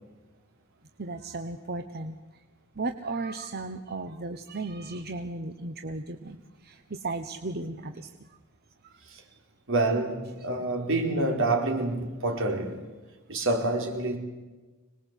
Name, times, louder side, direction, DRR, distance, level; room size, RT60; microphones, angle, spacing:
voice 1, 1.0-2.1 2.8-6.4 6.6-8.1 8.8-8.9, right 3 dB, 50° right, 1.1 m, -35 dB
voice 2, 9.7-12.8 13.3-14.2, right 2 dB, 65° right, 4.3 m, -27 dB
25.5 x 20.0 x 8.3 m
head